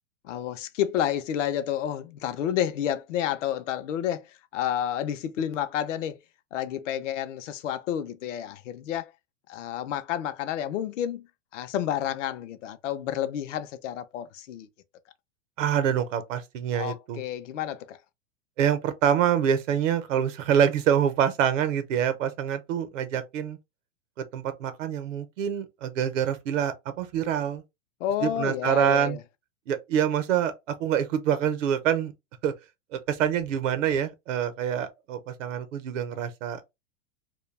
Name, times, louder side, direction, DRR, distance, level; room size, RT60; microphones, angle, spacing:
voice 1, 0.2-6.2 6.5-9.1 9.5-11.3 11.5-14.7 16.8-18.0 28.0-29.2, left 10 dB, 70° left, 0.5 m, -30 dB
voice 2, 15.6-17.2 18.6-23.6 24.2-27.6 28.2-29.2 29.7-32.1 32.4-32.5 32.9-36.6, right 9 dB, 70° right, 0.7 m, -26 dB
2.2 x 2.2 x 3.1 m
supercardioid pair, 145°, 39 cm